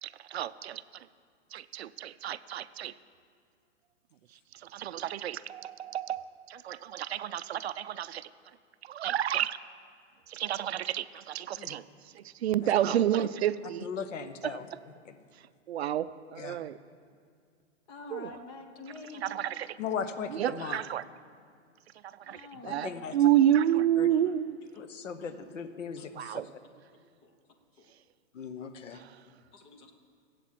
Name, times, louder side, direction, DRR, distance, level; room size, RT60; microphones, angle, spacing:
voice 1, 0.0-0.8 1.5-2.9 4.7-6.2 6.5-8.3 8.9-9.6 10.3-11.8 12.2-13.9 14.4-14.5 15.7-16.8 18.1-18.3 19.2-19.7 20.3-21.0 22.3-24.6 26.2-26.5 28.9-29.1, right 11 dB, 60° right, 15 dB, 0.5 m, -29 dB
voice 2, 12.6-13.0 13.8-14.7 15.0-15.2 16.4-16.6 19.8-20.8 22.6-23.1 24.0-24.1 24.8-26.4 28.3-29.0, left 6 dB, 90° left, 10 dB, 1.2 m, -38 dB
voice 3, 17.9-19.3 22.3-23.4 24.1-24.3 24.7-24.9 25.2-25.3 26.0-26.4 27.2-27.4 27.8-27.9 29.5-29.9, left 3 dB, 15° left, 5 dB, 0.7 m, -48 dB
15.5 x 8.3 x 7.6 m, 2.2 s
hypercardioid pair, 165°, 36 cm